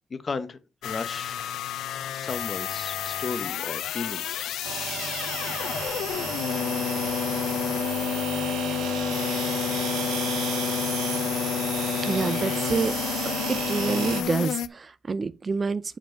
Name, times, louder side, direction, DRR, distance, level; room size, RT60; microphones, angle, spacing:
voice 1, 0.1-1.3 2.1-4.5, left 4 dB, 35° left, 1.0 m, -35 dB
sound 1, 0.8-14.7, left 10 dB, 80° left, 0.5 m, -30 dB
sound 2, 4.6-14.2, right 10 dB, 85° right, 0.6 m, -33 dB
voice 2, 12.0-12.9 13.7-16.0, right 4 dB, 35° right, 0.4 m, -27 dB
7.9 x 4.5 x 4.5 m
cardioid pair, 90°, 0 cm